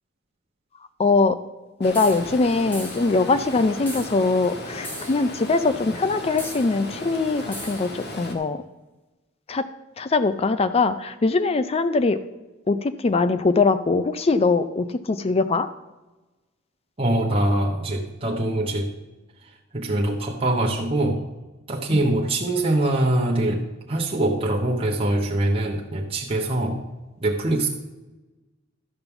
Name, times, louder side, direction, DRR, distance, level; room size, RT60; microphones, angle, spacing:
voice 1, 1.0-1.4 1.8-8.6 9.5-9.7 10.0-12.2 12.7-15.7 21.9-22.0, left 3 dB, 30° left, 12 dB, 0.4 m, -22 dB
Stream, 1.8-8.3, left 1 dB, 55° left, 1.7 m, -36 dB
sound 1, 1.9-2.2 2.7-3.1 3.9-4.1 4.8-5.2 6.4-6.7 7.5-7.9, equal, 10° left, 1.6 m, -37 dB
voice 2, 17.0-18.9 19.7-21.2 21.7-26.8 27.2-27.7, right 1 dB, 30° right, -2 dB, 1.1 m, -23 dB
12.0 x 5.3 x 7.0 m, 1.1 s
head